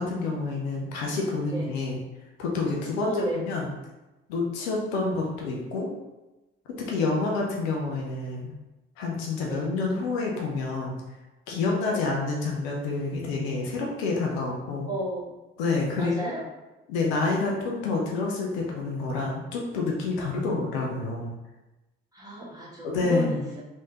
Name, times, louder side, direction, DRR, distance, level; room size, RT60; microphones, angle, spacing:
voice 1, 0.0-2.0 2.4-3.7 4.3-5.9 6.8-8.5 9.0-11.0 11.5-14.9 15.6-16.3 16.9-21.4 22.8-23.4, left 3 dB, 70° left, -1 dB, 0.6 m, -28 dB
voice 2, 3.0-3.6 7.0-7.1 9.4-9.7 11.9-12.1 14.9-15.3 16.0-16.4 22.1-23.6, right 1 dB, 10° right, -7 dB, 1.4 m, -32 dB
3.2 x 2.7 x 2.8 m, 1.0 s
figure-of-eight pair, 40°, 32 cm